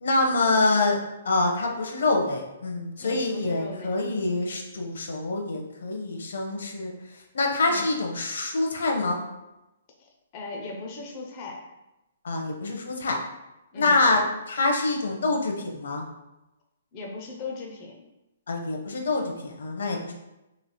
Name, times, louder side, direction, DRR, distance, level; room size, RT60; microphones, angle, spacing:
voice 1, 0.0-1.0 1.2-6.9 7.3-9.2 12.2-13.2 13.8-14.2 14.5-16.0 18.5-20.1, left 2 dB, 65° left, 1 dB, 0.8 m, -25 dB
voice 2, 3.0-3.9 7.7-7.9 10.0-11.6 13.7-14.0 16.9-18.0, left 3 dB, 20° left, -1 dB, 0.6 m, -38 dB
3.2 x 2.9 x 4.2 m, 0.96 s
hypercardioid pair, 175°, 0 cm